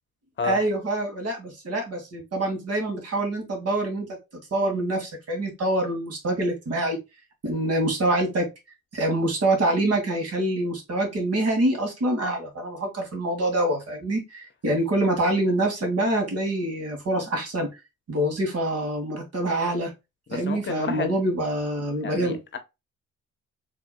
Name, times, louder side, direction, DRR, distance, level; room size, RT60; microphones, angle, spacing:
voice 1, 0.4-4.1 4.5-7.0 7.4-8.5 8.9-17.8 18.1-19.9 20.3-22.4, right 1 dB, 55° right, 2.2 m, -25 dB
voice 2, 20.3-21.1 22.0-22.6, left 5 dB, 40° left, 0.9 m, -30 dB
4.7 x 3.6 x 2.2 m
cardioid pair, 90°, 30 cm